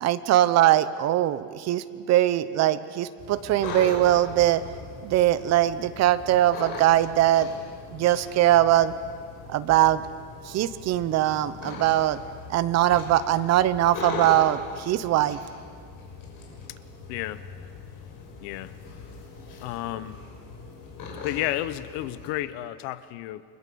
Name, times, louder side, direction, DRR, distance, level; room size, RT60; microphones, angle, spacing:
voice 1, 0.0-4.6 5.0-7.5 7.9-8.9 9.5-10.0 10.4-12.2 12.5-15.4, right 13 dB, 35° right, 14 dB, 0.8 m, -21 dB
sound 1, 3.2-22.3, left 3 dB, 45° left, 6.4 m, -40 dB
voice 2, 17.1-17.4 18.4-18.7 19.6-20.2 21.2-23.4, left 15 dB, 70° left, 15 dB, 1.2 m, -31 dB
30.0 x 22.0 x 7.0 m, 2.1 s
cardioid pair, 175°, 45 cm